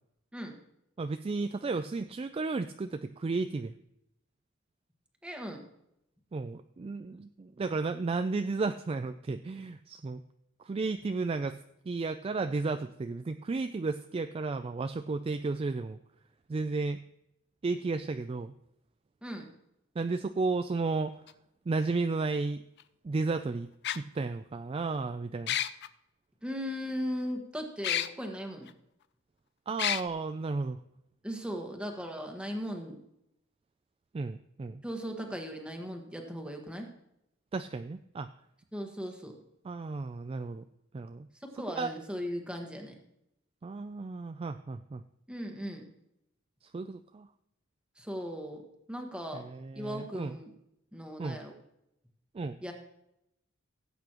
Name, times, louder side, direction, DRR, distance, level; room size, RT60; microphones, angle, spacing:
voice 1, 1.0-3.7 6.3-10.2 10.6-11.6 11.9-16.0 16.5-17.0 17.6-18.5 20.0-21.1 21.7-22.6 23.0-23.7 23.9-25.6 29.7-30.8 34.1-34.8 37.5-38.3 39.6-40.6 40.9-41.3 41.8-41.9 43.6-45.0 46.7-47.3 49.3-50.4 51.2-51.4 52.3-52.6, right 3 dB, 25° right, 9 dB, 0.3 m, -33 dB
voice 2, 5.2-5.6 19.2-19.5 26.4-28.7 31.2-33.0 34.8-36.9 38.7-39.4 41.4-43.0 45.3-45.9 48.0-48.6 48.9-49.4 49.7-50.5 50.9-51.5 52.6-52.7, equal, 5° right, 3 dB, 1.5 m, -38 dB
sound 1, 21.3-21.4 22.8-22.9 23.8-24.0 25.5-25.9 27.8-28.1 28.7-28.8 29.8-30.0, left 11 dB, 55° left, 0.5 m, -29 dB
17.0 x 8.2 x 3.0 m, 0.80 s
head